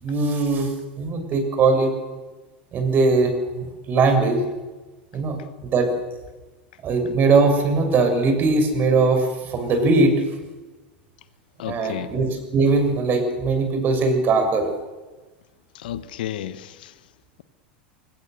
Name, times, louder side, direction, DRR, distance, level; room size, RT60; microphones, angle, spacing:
voice 1, 0.0-1.9 2.7-4.4 5.1-5.9 6.8-10.1 11.6-14.7, right 3 dB, 40° right, 6.7 m, -20 dB
voice 2, 11.6-12.1 15.7-16.9, left 12 dB, 70° left, 1.3 m, -32 dB
25.0 x 21.5 x 6.8 m
hypercardioid pair, 85°, 5 cm